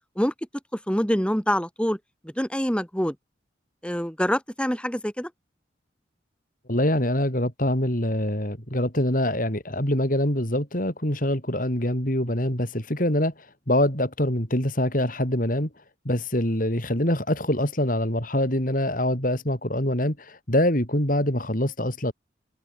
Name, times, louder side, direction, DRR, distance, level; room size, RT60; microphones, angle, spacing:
voice 1, 0.9-2.0 2.2-3.1 3.8-5.3, equal, 5° left, 7.9 m, -25 dB
voice 2, 6.7-13.3 13.7-15.7 16.0-22.1, left 1 dB, 45° left, 6.4 m, -24 dB
head